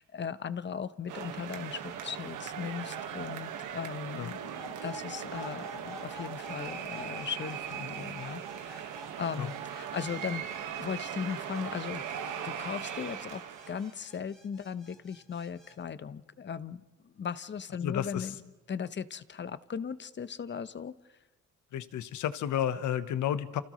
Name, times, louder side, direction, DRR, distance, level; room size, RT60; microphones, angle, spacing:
voice 1, 0.0-10.5 10.8-12.0 12.4-18.3 18.7-21.0, left 7 dB, 40° left, 14 dB, 0.8 m, -38 dB
sound 1, 1.1-14.0, right 9 dB, 85° right, 1.6 m, -39 dB
sound 2, 4.6-15.8, left 1 dB, ahead, 2.5 m, -50 dB
voice 2, 17.8-18.3 21.7-23.6, left 10 dB, 75° left, 12 dB, 1.1 m, -31 dB
29.5 x 28.0 x 3.1 m, 1.2 s
cardioid pair, 90°, 30 cm